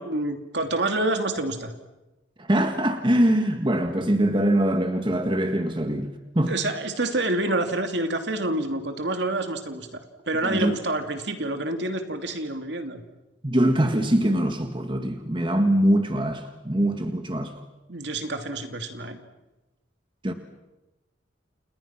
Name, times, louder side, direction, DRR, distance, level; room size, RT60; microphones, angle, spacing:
voice 1, 0.0-1.7 6.5-9.9 10.3-13.0 17.9-19.2, right 2 dB, 60° right, 2.7 m, -27 dB
voice 2, 2.4-6.1 6.4-6.5 10.4-10.7 13.4-17.5 20.2-20.3, right 1 dB, 25° right, 1.7 m, -23 dB
29.5 x 29.5 x 6.0 m
head